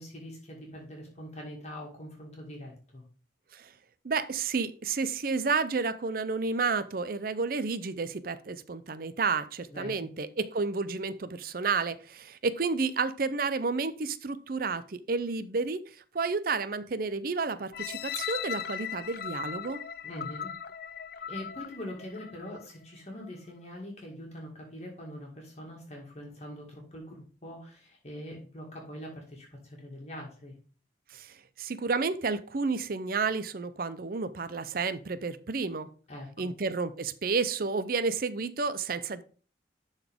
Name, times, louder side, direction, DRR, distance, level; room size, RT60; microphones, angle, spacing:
voice 1, 0.0-3.0 9.7-10.1 20.0-20.5 21.3-30.5 36.1-36.5, equal, 35° left, -1 dB, 1.9 m, -43 dB
voice 2, 4.0-15.8 16.1-19.8 31.1-35.9 36.4-39.2, right 4 dB, 50° right, 14 dB, 0.5 m, -31 dB
sound 1, 17.7-22.7 23.2-23.3, left 9 dB, 55° left, 0.4 m, -38 dB
11.5 x 4.1 x 3.6 m, 0.39 s
head